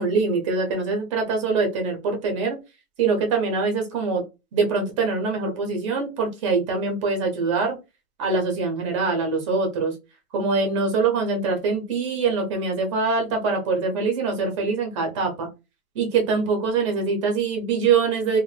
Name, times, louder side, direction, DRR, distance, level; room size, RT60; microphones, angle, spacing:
voice 1, 0.0-2.6 3.0-4.2 4.5-7.8 8.2-9.9 10.3-15.5 15.9-18.4, right 4 dB, 25° right, 3 dB, 0.5 m, -23 dB
2.4 x 2.1 x 3.1 m, 0.27 s
hypercardioid pair, 150°, 42 cm